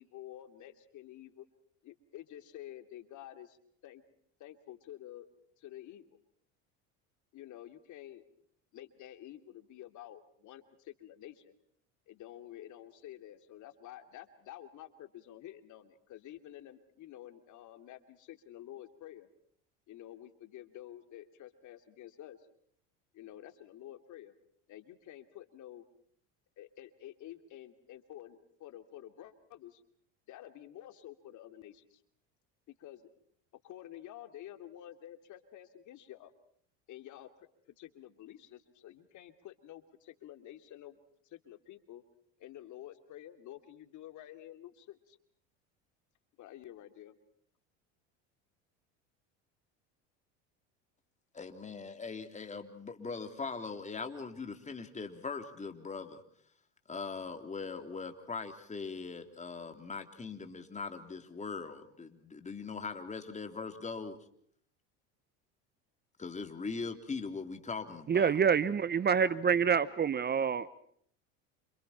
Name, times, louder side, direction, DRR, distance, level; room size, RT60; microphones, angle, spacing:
voice 1, 0.0-1.4 1.8-3.6 3.8-4.0 4.4-5.3 5.6-6.2 7.3-8.2 8.7-11.5 12.1-19.3 19.9-22.4 23.1-24.3 24.7-25.8 26.6-29.8 30.3-32.0 32.7-33.1 33.6-36.3 36.9-37.5 37.8-41.0 41.2-42.0 42.4-45.2 46.4-47.2, left 12 dB, 55° left, 2.9 m, -50 dB
voice 2, 51.3-56.2 56.9-64.2 66.2-68.3, left 4 dB, 20° left, 3.4 m, -41 dB
voice 3, 68.1-70.7, right 7 dB, 30° right, 1.0 m, -27 dB
29.5 x 27.5 x 4.4 m
supercardioid pair, 95°, 36 cm